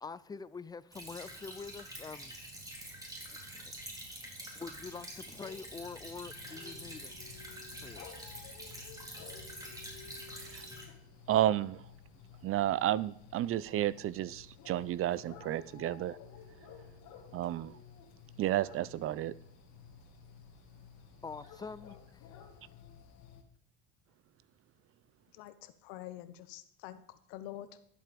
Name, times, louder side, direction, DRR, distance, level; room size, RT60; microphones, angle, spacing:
voice 1, 0.0-2.4 3.3-3.4 3.6-3.7 4.6-7.1 7.8-8.1 21.2-22.2, left 4 dB, 15° left, 0.4 m, -45 dB
Stream / Trickle dribble, 0.9-10.9, right 1 dB, 10° right, 3.3 m, -47 dB
sound 1, 4.9-23.4, left 7 dB, 55° left, 2.0 m, -54 dB
voice 2, 11.3-11.8 12.4-16.2 17.3-17.7 18.4-19.3, right 13 dB, 40° right, 0.5 m, -31 dB
voice 3, 25.3-27.8, left 13 dB, 75° left, 1.0 m, -47 dB
11.5 x 7.8 x 5.2 m
supercardioid pair, 95°, 33 cm